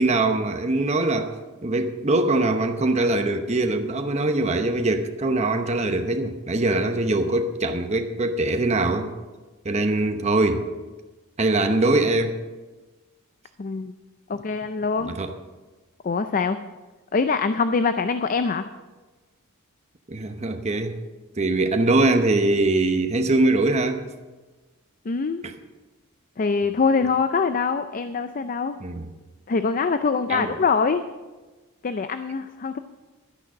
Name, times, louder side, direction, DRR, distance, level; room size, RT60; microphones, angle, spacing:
voice 1, 0.0-1.3 1.6-9.1 9.6-10.7 11.4-12.4 15.0-15.3 20.1-21.0 21.4-24.1 25.4-25.5 28.8-29.1 30.3-30.5, right 2 dB, 30° right, 6 dB, 0.8 m, -22 dB
voice 2, 13.6-13.9 14.3-15.1 16.0-16.6 17.1-18.7 25.1-25.4 26.4-28.8 29.5-31.0 31.8-32.8, left 4 dB, 40° left, 10 dB, 0.4 m, -24 dB
12.0 x 9.9 x 6.3 m, 1.2 s
head